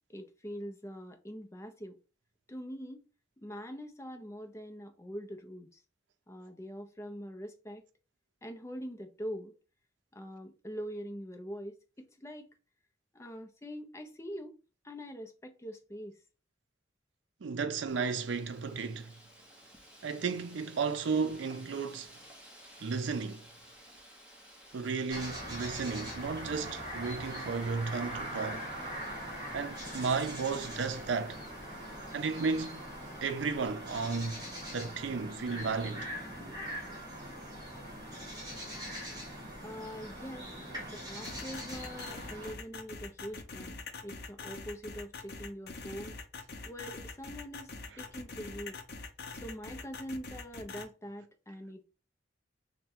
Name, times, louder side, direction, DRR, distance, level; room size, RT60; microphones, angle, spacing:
voice 1, 0.1-2.0 2.5-3.0 3.4-5.8 6.3-7.8 8.4-9.5 10.1-12.5 13.1-14.5 14.8-16.1 39.6-40.5 40.9-46.2 46.6-48.8 49.4-51.8, equal, 15° left, 0.5 m, -43 dB
voice 2, 17.4-19.1 20.0-22.1 22.8-23.4 24.7-28.7 29.5-31.4 32.1-32.8 33.2-34.4 34.7-36.1 47.9-48.0, right 5 dB, 85° right, 0.5 m, -34 dB
Wind, 17.9-33.7, equal, 5° right, 1.0 m, -56 dB
sound 1, 25.1-42.5, equal, 20° right, 1.4 m, -42 dB
sound 2, 41.2-50.8, left 4 dB, 60° left, 0.6 m, -44 dB
3.4 x 2.2 x 4.3 m
head